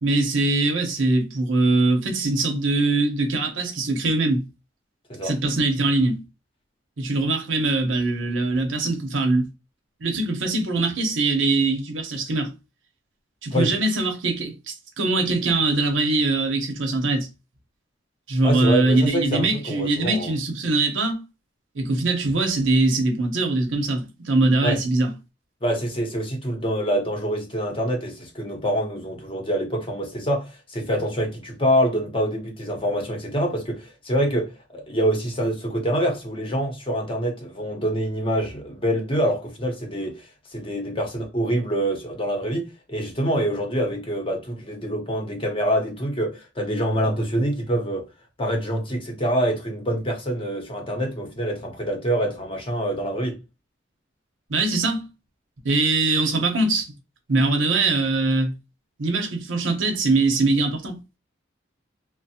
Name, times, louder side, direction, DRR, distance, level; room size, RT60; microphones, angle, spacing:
voice 1, 0.0-4.4 5.2-6.2 7.0-9.5 10.0-12.5 13.4-17.3 18.3-21.2 21.7-25.1 54.5-55.1 55.6-56.9 57.3-58.5 59.0-61.0, right 2 dB, 85° right, 0.8 m, -22 dB
voice 2, 18.4-20.3 24.6-24.8 25.6-48.0 48.4-53.4, equal, 30° left, 0.7 m, -25 dB
3.1 x 2.0 x 2.8 m
head